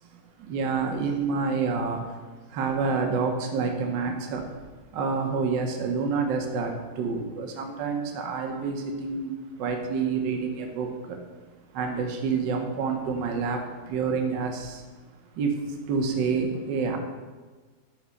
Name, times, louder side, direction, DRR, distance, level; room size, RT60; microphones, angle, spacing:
voice 1, 0.0-11.3 11.5-15.0 15.3-17.0, right 5 dB, 45° right, 3 dB, 2.0 m, -28 dB
11.5 x 7.1 x 6.7 m, 1.4 s
figure-of-eight pair, 90°, 0 cm